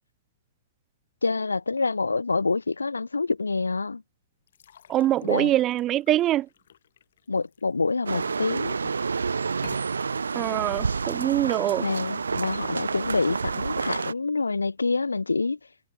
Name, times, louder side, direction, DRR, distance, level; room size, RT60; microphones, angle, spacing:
voice 1, 1.2-4.0 5.2-5.5 7.3-8.8 11.8-15.6, left 3 dB, 80° left, 0.9 m, -27 dB
sound 1, 4.5-8.3 8.7-9.1 9.5-9.8, left 9 dB, 60° left, 4.0 m, -50 dB
voice 2, 4.9-6.5 10.3-11.9, right 13 dB, 25° right, 0.4 m, -24 dB
sound 2, 8.1-14.1, right 5 dB, 75° right, 1.7 m, -29 dB
figure-of-eight pair, 110°, 0 cm